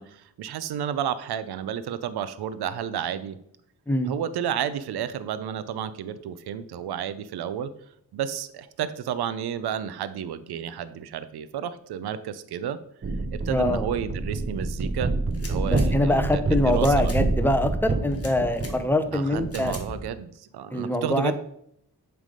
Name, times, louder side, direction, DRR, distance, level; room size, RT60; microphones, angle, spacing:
voice 1, 0.0-3.4 4.1-7.7 8.1-12.8 13.3-15.1 15.4-17.1 19.1-21.3, right 9 dB, 80° right, 14 dB, 0.6 m, -31 dB
sound 1, 13.0-20.1, right 2 dB, 35° right, 0.8 m, -27 dB
voice 2, 13.5-13.9 15.6-19.7 20.7-21.3, left 1 dB, 5° left, 8 dB, 0.7 m, -24 dB
sound 2, 15.3-15.9 16.7-17.2 18.1-18.7 19.5-19.8, left 3 dB, 40° left, 1.5 m, -42 dB
7.4 x 3.4 x 5.1 m, 0.72 s
cardioid pair, 85°, 38 cm